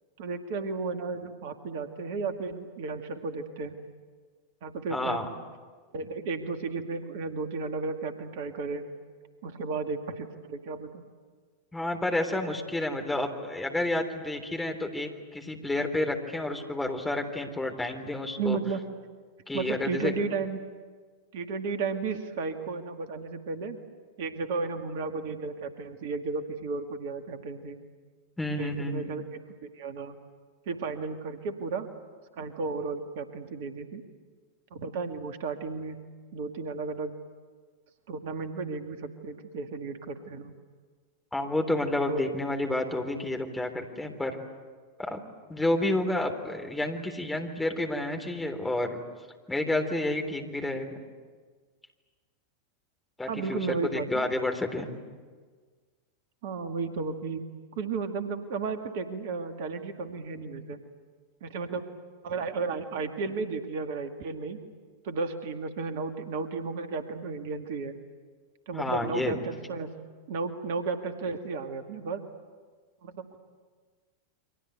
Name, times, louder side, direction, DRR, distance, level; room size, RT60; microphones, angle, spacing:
voice 1, 0.2-3.8 4.6-5.3 5.9-8.8 9.4-11.0 18.4-18.8 19.5-20.6 21.3-23.8 24.2-27.8 28.6-29.2 29.7-30.2 30.7-31.9 32.3-34.0 34.7-36.0 36.3-37.1 38.1-40.5 42.1-42.2 53.3-54.2 56.4-57.5 57.8-60.8 61.4-61.9 62.2-64.6 65.0-68.0 68.7-69.9 70.3-72.2 73.0-73.4, right 4 dB, 55° right, 7 dB, 2.0 m, -33 dB
voice 2, 4.9-5.2 11.7-18.6 19.5-20.1 28.4-29.1 41.3-44.4 45.0-45.2 45.5-49.0 49.5-51.0 53.2-54.9 68.7-69.3, left 1 dB, 10° left, 3 dB, 3.6 m, -30 dB
29.5 x 24.5 x 8.1 m, 1.5 s
figure-of-eight pair, 90°, 0 cm